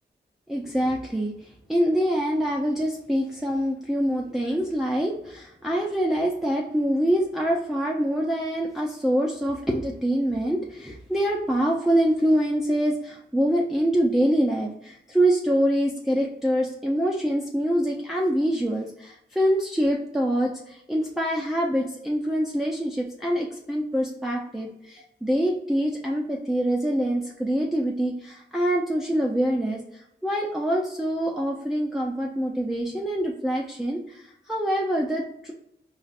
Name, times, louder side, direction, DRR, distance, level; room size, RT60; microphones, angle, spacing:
voice 1, 0.5-35.5, equal, ahead, -2 dB, 0.5 m, -25 dB
4.5 x 2.5 x 2.4 m, 0.78 s
cardioid pair, 65°, 19 cm